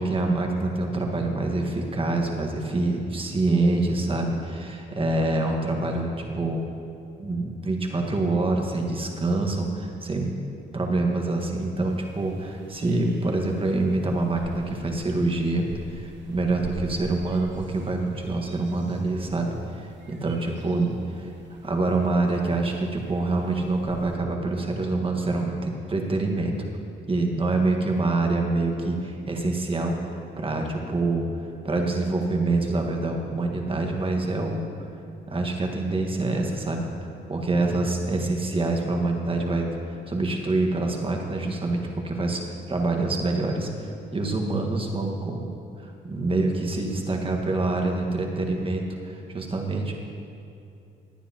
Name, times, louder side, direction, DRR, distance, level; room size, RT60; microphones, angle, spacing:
voice 1, 0.0-6.6 7.2-20.9 21.6-26.5 27.1-30.0 30.4-31.2 31.6-34.7 35.3-36.9 37.3-42.4 42.7-45.5 45.8-49.9, right 2 dB, 25° right, 2 dB, 1.5 m, -26 dB
sound 1, 11.9-24.1, right 5 dB, 65° right, 0.8 m, -47 dB
17.5 x 9.7 x 2.9 m, 2.6 s
cardioid pair, 90°, 20 cm